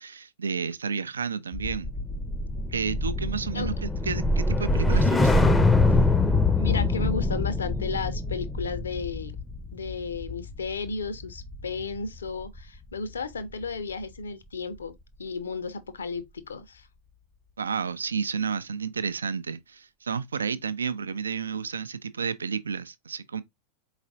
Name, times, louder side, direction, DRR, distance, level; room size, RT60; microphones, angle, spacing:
voice 1, 0.0-1.9 2.7-5.6 17.6-23.4, right 6 dB, 70° right, 0.4 m, -31 dB
sound 1, 1.5-11.9 12.3-12.6, left 2 dB, 10° left, 0.5 m, -24 dB
voice 2, 6.6-9.4 9.7-14.9 15.2-16.9, left 4 dB, 70° left, 0.7 m, -33 dB
4.4 x 4.0 x 2.4 m
figure-of-eight pair, 90°, 0 cm